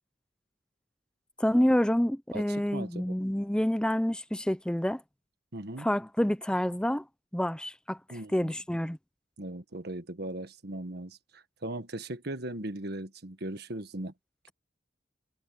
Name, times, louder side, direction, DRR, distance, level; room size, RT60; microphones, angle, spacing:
voice 1, 1.4-5.0 5.8-7.0 7.3-9.0, equal, 5° left, 0.5 m, -28 dB
voice 2, 2.3-3.2 5.5-5.9 8.1-8.5 9.4-14.1, right 1 dB, 60° right, 1.5 m, -38 dB
head